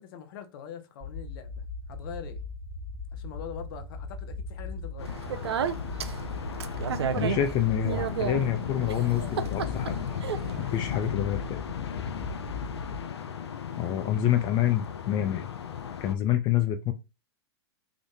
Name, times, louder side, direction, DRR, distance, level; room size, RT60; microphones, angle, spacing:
voice 1, 0.0-2.4 3.1-5.1 12.4-12.6, left 8 dB, 55° left, 0.9 m, -43 dB
sound 1, 1.0-13.0, left 3 dB, 25° right, 0.7 m, -39 dB
sound 2, 5.0-16.2, left 8 dB, 85° left, 0.6 m, -36 dB
Speech, 5.1-11.1, right 7 dB, 80° right, 0.5 m, -33 dB
voice 2, 7.2-10.2 10.6-11.6 13.8-15.5 16.0-16.9, left 11 dB, 35° left, 0.4 m, -27 dB
3.7 x 2.5 x 3.5 m
hypercardioid pair, 115°, 13 cm